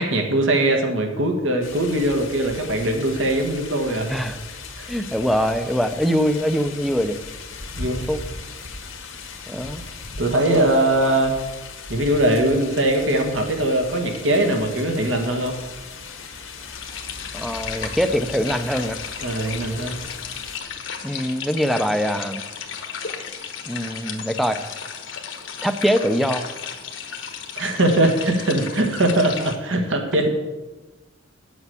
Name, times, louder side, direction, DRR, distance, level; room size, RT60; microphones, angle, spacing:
voice 1, 0.0-4.1 4.8-4.9 7.8-8.1 10.2-11.4 11.9-15.6 19.2-20.0 27.6-30.3, right 1 dB, 70° right, 3 dB, 1.7 m, -21 dB
sound 1, 1.6-20.6, left 4 dB, 85° left, 1.6 m, -38 dB
voice 2, 4.9-7.2 8.1-8.2 9.5-9.8 17.3-19.0 21.0-22.4 23.7-24.6 25.6-26.5, equal, ahead, 9 dB, 0.6 m, -23 dB
sound 2, 16.7-29.6, left 7 dB, 70° left, 1.2 m, -34 dB
9.3 x 7.1 x 6.9 m, 1.2 s
head